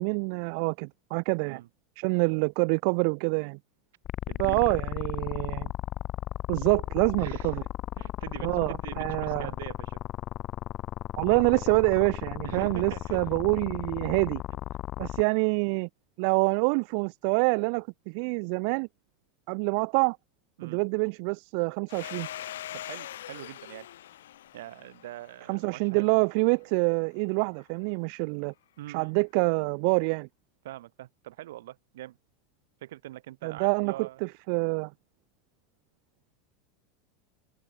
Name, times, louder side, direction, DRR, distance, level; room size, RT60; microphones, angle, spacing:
voice 1, 0.0-1.6 2.0-3.6 4.4-5.7 6.5-7.6 8.4-9.5 11.2-14.4 15.0-15.9 16.2-18.9 19.5-20.2 20.6-22.3 25.5-28.5 28.9-30.3 33.4-34.9, right 40 dB or more, 60° right, 0.5 m, -26 dB
sound 1, 4.0-15.2, left 14 dB, 45° left, 0.8 m, -35 dB
voice 2, 4.3-4.7 7.2-7.5 8.0-10.0 12.4-13.2 20.6-20.8 22.7-23.9 24.5-26.1 28.8-29.1 30.6-32.2 32.8-34.2, right 15 dB, 75° right, 3.1 m, -43 dB
Domestic sounds home sounds, 21.9-26.3, left 12 dB, 85° left, 1.0 m, -42 dB
open air
hypercardioid pair, 105°, 0 cm